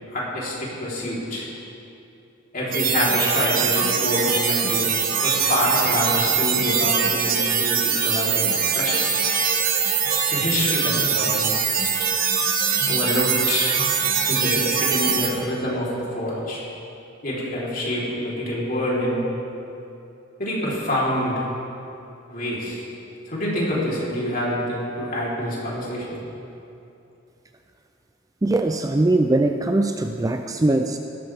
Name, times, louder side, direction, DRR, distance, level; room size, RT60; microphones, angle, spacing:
voice 1, 0.1-1.5 2.5-4.9 5.2-9.0 10.3-11.5 12.9-13.8 14.3-16.6 17.2-19.2 20.4-21.3 22.3-22.8 23.3-26.2, left 1 dB, 45° left, -6 dB, 3.7 m, -26 dB
sound 1, 2.7-15.3, right 6 dB, 45° right, 1.4 m, -22 dB
voice 2, 28.4-31.0, right 2 dB, 15° right, 6 dB, 0.4 m, -21 dB
17.0 x 13.5 x 3.5 m, 2.8 s
head